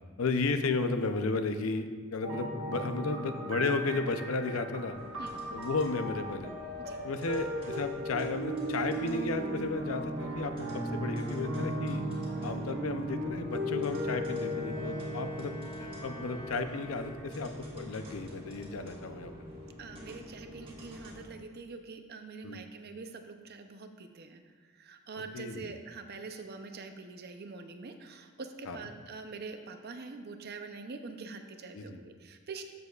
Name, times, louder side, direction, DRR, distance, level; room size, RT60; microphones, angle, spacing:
voice 1, 0.2-5.0 5.5-6.5 7.0-12.0 12.4-19.3 22.4-22.6 25.3-25.7 28.7-28.8 31.7-32.0, left 3 dB, 85° left, 8 dB, 0.6 m, -34 dB
sound 1, 2.2-21.1, equal, 65° right, 1.4 m, -37 dB
sound 2, 4.9-21.3, equal, 25° right, 1.6 m, -52 dB
Bowed string instrument, 14.2-17.7, right 1 dB, 45° left, 2.3 m, -50 dB
voice 2, 19.8-24.4 24.7-32.6, right 4 dB, 50° right, 7 dB, 0.6 m, -44 dB
13.0 x 6.7 x 2.4 m, 1.5 s
head